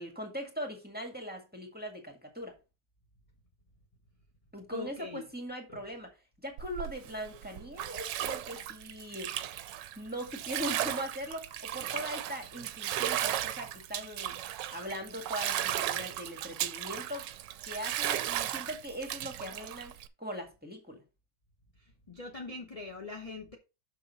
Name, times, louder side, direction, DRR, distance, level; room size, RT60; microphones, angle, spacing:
voice 1, 0.0-2.5 4.5-9.3 9.9-14.4 14.7-17.3 17.6-21.0, equal, 5° right, 1.5 m, -40 dB
voice 2, 4.7-5.3 5.7-5.8 21.8-23.6, left 3 dB, 30° left, 0.7 m, -42 dB
Bathtub (filling or washing), 6.6-20.1, right 12 dB, 75° right, 1.2 m, -35 dB
6.6 x 6.2 x 4.1 m
omnidirectional pair, 2.1 m